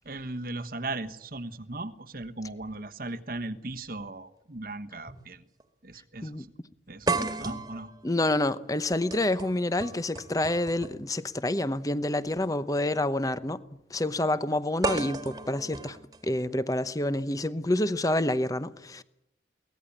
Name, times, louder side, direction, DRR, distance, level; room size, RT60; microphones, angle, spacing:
voice 1, 0.0-5.4 5.8-6.3 6.9-7.1 7.4-7.9, right 2 dB, 50° right, 1.2 m, -37 dB
sound 1, 3.8-3.9 5.1-5.2 5.6-5.7 7.1-11.1 12.3-12.4 14.8-16.8, right 3 dB, 20° right, 1.8 m, -34 dB
voice 2, 8.0-13.6 13.9-16.0 16.2-19.0, left 1 dB, 20° left, 0.9 m, -28 dB
23.0 x 18.5 x 8.6 m
head